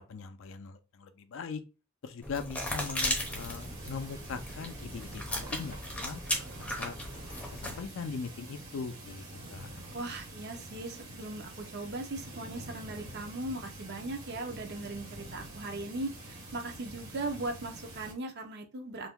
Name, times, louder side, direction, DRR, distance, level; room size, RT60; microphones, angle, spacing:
voice 1, 0.0-1.6 2.0-6.2 6.6-7.0 7.4-9.2 9.5-9.8, left 5 dB, 60° left, 0.4 m, -40 dB
sound 1, 2.2-7.9, left 1 dB, 5° left, 0.6 m, -36 dB
sound 2, 3.2-18.1, right 1 dB, 70° right, 1.4 m, -46 dB
voice 2, 9.9-19.1, right 2 dB, 50° right, 0.6 m, -39 dB
2.6 x 2.1 x 3.5 m
head